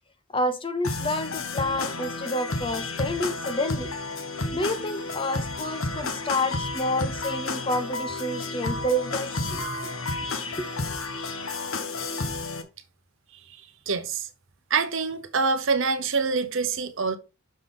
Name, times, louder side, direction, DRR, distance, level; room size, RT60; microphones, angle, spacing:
voice 1, 0.3-3.9 4.5-9.9 10.6-10.7, left 1 dB, 25° left, 0.8 m, -29 dB
sound 1, 0.8-12.6, left 2 dB, 65° left, 1.2 m, -31 dB
voice 2, 13.9-14.3 14.7-17.2, right 4 dB, 60° right, 0.8 m, -25 dB
6.6 x 5.3 x 3.8 m
head